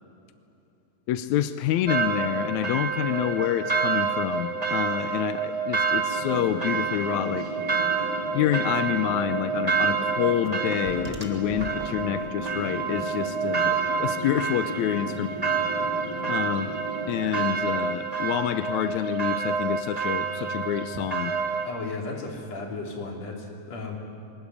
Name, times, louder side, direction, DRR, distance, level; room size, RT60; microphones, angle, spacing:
voice 1, 1.1-7.5 8.3-15.3 16.3-16.7 17.1-21.3, left 11 dB, 75° left, 11 dB, 1.7 m, -27 dB
sound 1, 1.9-21.7, right 5 dB, 20° right, 1.0 m, -28 dB
sound 2, 6.1-17.5, equal, 10° left, 3.9 m, -37 dB
voice 2, 21.7-24.0, left 3 dB, 50° left, 1 dB, 4.1 m, -35 dB
23.0 x 20.0 x 9.9 m, 2.8 s
omnidirectional pair, 3.9 m